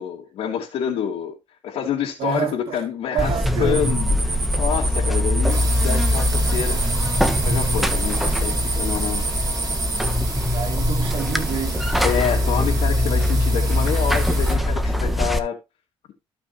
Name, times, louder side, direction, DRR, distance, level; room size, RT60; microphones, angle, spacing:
voice 1, 0.0-1.4 1.6-3.3 3.6-6.8 7.4-9.2 12.0-15.6, left 9 dB, 75° left, 3.2 m, -27 dB
voice 2, 2.2-2.9 3.1-4.0 10.5-12.1, right 8 dB, 60° right, 2.6 m, -28 dB
Buzz, 3.2-15.4, left 1 dB, ahead, 1.4 m, -22 dB
sound 1, 3.7-10.2, right 3 dB, 20° right, 4.4 m, -29 dB
sound 2, 5.5-14.6, right 3 dB, 40° right, 6.1 m, -32 dB
16.5 x 6.1 x 2.9 m
cardioid pair, 115°, 10 cm